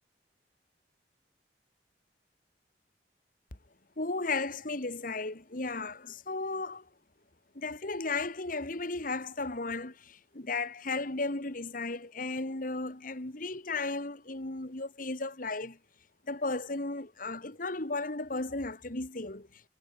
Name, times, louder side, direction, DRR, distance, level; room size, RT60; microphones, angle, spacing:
voice 1, 4.0-6.9 7.5-15.8 16.3-19.6, left 3 dB, 50° left, 2.0 m, -35 dB
head